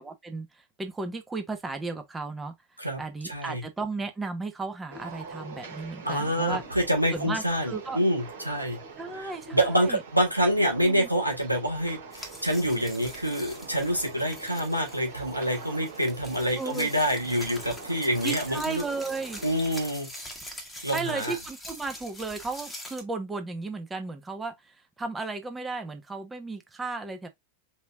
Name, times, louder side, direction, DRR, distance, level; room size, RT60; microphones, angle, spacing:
voice 1, 0.0-2.5 3.0-6.6 7.1-8.0 9.0-10.0 10.8-11.1 16.5-16.9 18.2-19.4 20.9-27.3, right 3 dB, 10° right, 1.0 m, -34 dB
voice 2, 2.8-3.6 6.0-8.8 9.5-18.8 19.4-20.1 20.8-21.3, equal, 90° right, 1.3 m, -27 dB
sound 1, 4.9-19.9, right 4 dB, 65° right, 2.5 m, -44 dB
sound 2, 12.1-23.0, equal, 5° left, 1.4 m, -43 dB
5.4 x 3.1 x 2.4 m
figure-of-eight pair, 90°, 0 cm